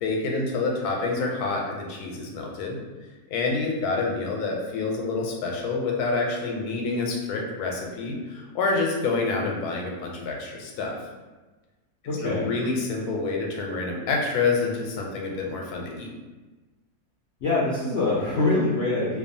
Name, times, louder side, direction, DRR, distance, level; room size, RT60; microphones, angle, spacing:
voice 1, 0.0-2.8 3.3-11.0 12.2-16.1, left 3 dB, 85° left, 0 dB, 1.1 m, -27 dB
voice 2, 12.0-12.5 17.4-19.2, left 2 dB, 65° left, -7 dB, 0.7 m, -24 dB
2.6 x 2.3 x 2.6 m, 1.2 s
omnidirectional pair, 1.6 m